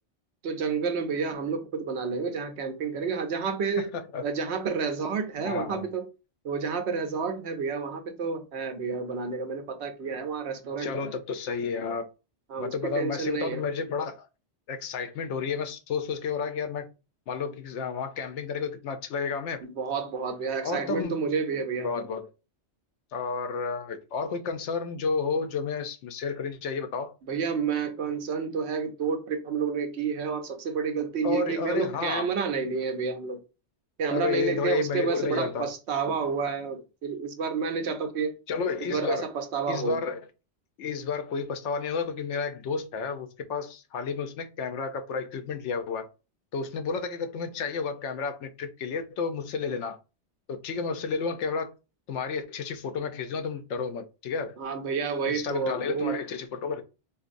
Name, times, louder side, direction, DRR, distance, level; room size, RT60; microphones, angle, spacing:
voice 1, 0.4-3.9 4.2-6.1 6.4-11.1 12.5-13.6 19.6-21.9 27.3-33.4 34.0-38.4 38.8-40.0 54.6-56.2, right 5 dB, 70° right, 0.9 m, -30 dB
voice 2, 3.7-4.2 5.4-5.9 10.8-12.1 12.6-14.3 14.7-16.9 17.3-19.6 20.6-21.1 21.8-22.3 23.1-27.1 31.2-32.3 34.1-35.7 38.5-39.3 39.7-40.3 40.8-46.1 46.5-50.0 50.5-51.7 52.1-54.6 55.2-56.8, left 5 dB, 80° left, 0.9 m, -31 dB
4.0 x 2.5 x 2.5 m
omnidirectional pair, 1.2 m